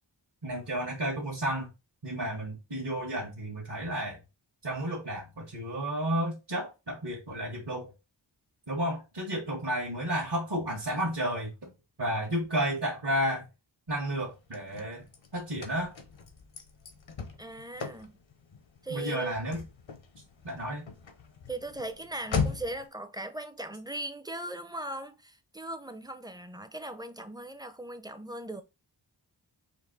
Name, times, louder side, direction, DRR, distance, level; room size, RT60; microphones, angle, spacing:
voice 1, 0.4-1.7 2.0-4.2 4.6-7.9 8.7-11.7 12.0-13.4 13.9-15.1 15.3-15.9 18.9-19.6 20.4-20.9, right 1 dB, 65° right, 1.6 m, -32 dB
Car / Slam, 14.2-22.9, left 5 dB, 85° left, 0.9 m, -39 dB
voice 2, 17.4-18.2 18.8-19.3 21.5-28.6, right 1 dB, 10° right, 0.5 m, -39 dB
4.5 x 2.7 x 4.0 m
wide cardioid pair, 65°, 45 cm